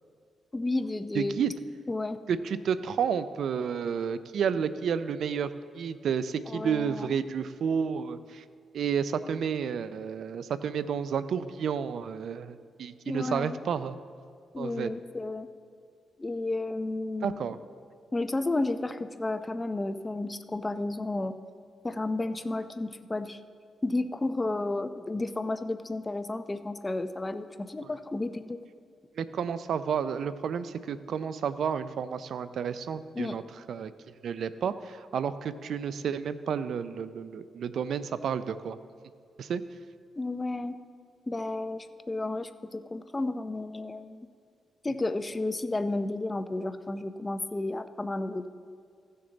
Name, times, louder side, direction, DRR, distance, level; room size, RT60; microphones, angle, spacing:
voice 1, 0.5-1.4 1.9-2.2 6.5-7.2 13.1-13.6 14.5-15.5 16.2-17.4 18.1-21.4 21.8-23.4 23.8-28.6 33.1-33.4 40.2-40.8 41.3-44.3 44.8-48.5, left 2 dB, 20° left, 10 dB, 0.5 m, -32 dB
voice 2, 1.1-1.5 2.3-5.5 5.8-8.4 8.7-13.9 14.6-14.9 17.2-17.6 29.2-33.4 33.7-33.9 34.2-38.8 39.4-39.6, right 7 dB, 70° right, 14 dB, 0.4 m, -31 dB
15.0 x 6.7 x 3.9 m, 2.3 s
cardioid pair, 85°, 0 cm